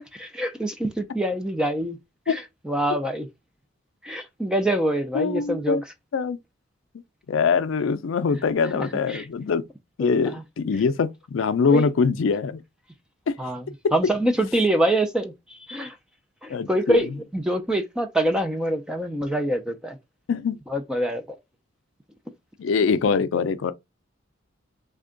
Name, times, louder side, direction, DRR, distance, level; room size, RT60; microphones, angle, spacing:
voice 1, 0.0-2.0 2.3-3.3 4.0-5.8 8.7-9.3 10.0-10.4 11.7-11.9 13.4-13.6 13.9-16.0 16.4-20.0 20.7-21.2, right 1 dB, 5° right, 0.4 m, -25 dB
voice 2, 5.1-5.8 6.1-6.4 7.3-9.6 10.0-12.6 13.3-13.4 13.8-13.9 16.5-17.0 20.3-20.6 22.6-23.7, left 5 dB, 75° left, 0.4 m, -23 dB
3.5 x 2.2 x 3.7 m
head